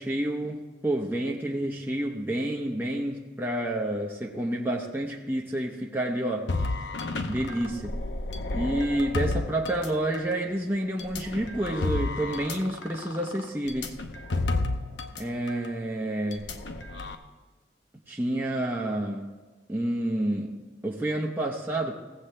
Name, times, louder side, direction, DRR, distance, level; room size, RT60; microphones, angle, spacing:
voice 1, 0.0-6.5 7.2-8.0 8.5-14.0 15.2-16.6 18.1-19.3 19.7-22.0, right 1 dB, 10° right, 0.7 m, -29 dB
sound 1, 6.5-10.4 11.0-15.2 15.5-15.7 16.3-17.2, left 2 dB, 70° left, 0.8 m, -31 dB
16.5 x 7.9 x 3.3 m
head